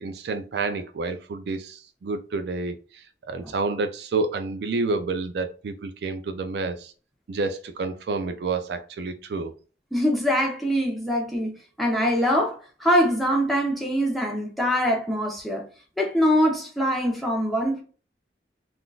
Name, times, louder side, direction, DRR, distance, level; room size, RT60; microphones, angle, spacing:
voice 1, 0.0-6.9 7.3-9.5, right 3 dB, 65° right, 0.4 m, -29 dB
voice 2, 9.9-15.7 16.0-17.8, equal, ahead, 0.8 m, -23 dB
3.7 x 2.4 x 2.3 m
head